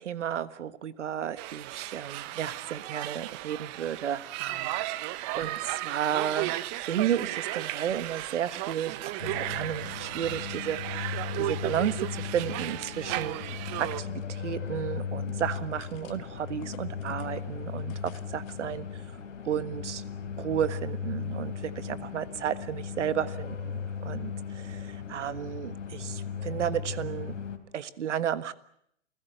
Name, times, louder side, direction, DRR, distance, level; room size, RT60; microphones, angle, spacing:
voice 1, 0.0-6.6 6.9-13.4 13.8-19.0 19.4-20.0 20.4-27.4 27.7-28.5, right 9 dB, 70° right, 15 dB, 1.5 m, -33 dB
sound 1, 1.4-14.0, right 16 dB, 35° right, 1.0 m, -35 dB
sound 2, 9.2-27.6, left 6 dB, 90° left, 3.3 m, -37 dB
sound 3, 11.2-11.9 12.2-18.7, left 14 dB, 40° left, 2.0 m, -53 dB
29.0 x 16.0 x 9.2 m, 0.72 s
hypercardioid pair, 125°, 37 cm